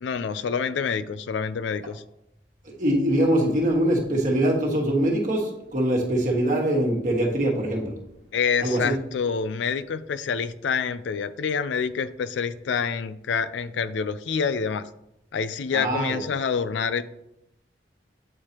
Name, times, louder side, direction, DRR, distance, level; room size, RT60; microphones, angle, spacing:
voice 1, 0.0-2.0 8.3-14.9 15.3-17.0, left 6 dB, 90° left, 15 dB, 0.4 m, -27 dB
voice 2, 2.6-7.9 8.6-8.9 15.7-16.2, right 1 dB, 45° right, -1 dB, 1.4 m, -23 dB
8.5 x 4.7 x 2.9 m, 0.84 s
head